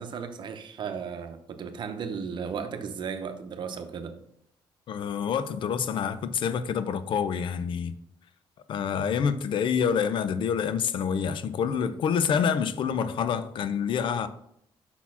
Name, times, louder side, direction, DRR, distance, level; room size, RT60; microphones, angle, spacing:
voice 1, 0.0-4.2, right 6 dB, 55° right, 0.8 m, -35 dB
voice 2, 4.9-7.9 8.7-14.3, left 7 dB, 60° left, 0.5 m, -27 dB
5.8 x 4.2 x 5.7 m
cardioid pair, 110°, 10 cm